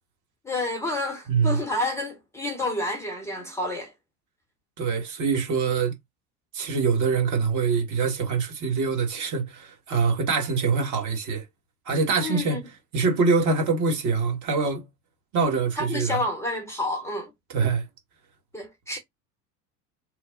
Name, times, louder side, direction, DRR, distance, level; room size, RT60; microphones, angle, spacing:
voice 1, 0.4-3.9 12.2-12.6 15.8-17.3 18.5-19.0, left 2 dB, 5° left, 0.9 m, -29 dB
voice 2, 1.3-1.6 4.8-5.9 6.5-11.4 11.9-12.6 12.9-14.8 15.3-16.2 17.5-17.8, right 5 dB, 35° right, 1.3 m, -24 dB
3.2 x 2.0 x 3.7 m
figure-of-eight pair, 70°, 48 cm